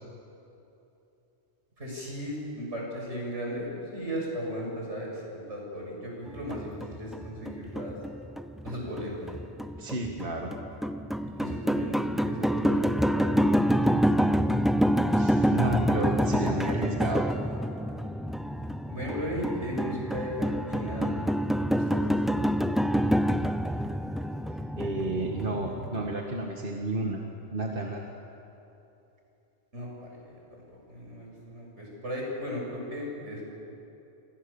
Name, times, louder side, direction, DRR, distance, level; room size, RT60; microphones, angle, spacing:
voice 1, 1.8-3.7 3.9-8.0 8.6-9.1 11.2-14.1 18.9-21.2 21.6-23.1 29.7-33.4, equal, 75° right, -2 dB, 7.7 m, -37 dB
sound 1, 6.3-26.1, equal, ahead, 0.5 m, -27 dB
voice 2, 9.8-10.5 15.1-17.3 24.5-27.2 27.5-28.0, right 2 dB, 50° right, 0 dB, 2.1 m, -31 dB
29.0 x 25.5 x 7.2 m, 2.9 s
omnidirectional pair, 1.2 m